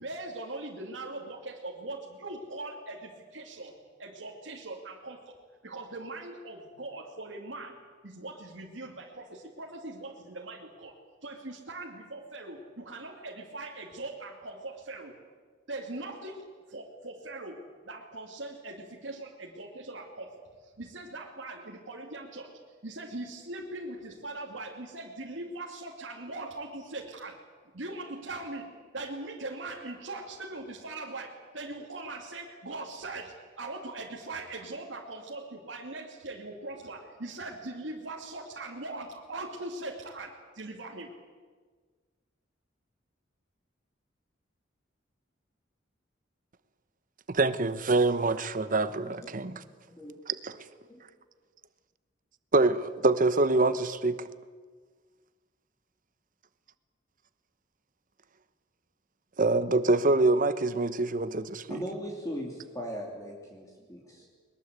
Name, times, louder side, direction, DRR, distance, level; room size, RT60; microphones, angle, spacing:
voice 1, 0.0-3.7 4.0-5.4 5.6-7.8 8.0-11.0 11.2-15.2 15.7-27.4 27.7-41.1, right 2 dB, 90° right, -1 dB, 2.5 m, -41 dB
voice 2, 47.3-49.6 50.3-50.5 52.5-54.3 59.4-61.8, right 2 dB, 45° right, 13 dB, 1.1 m, -25 dB
voice 3, 49.9-50.2 50.9-51.0 61.7-64.3, equal, 20° left, -1 dB, 2.9 m, -39 dB
21.5 x 21.0 x 8.2 m, 1.5 s
head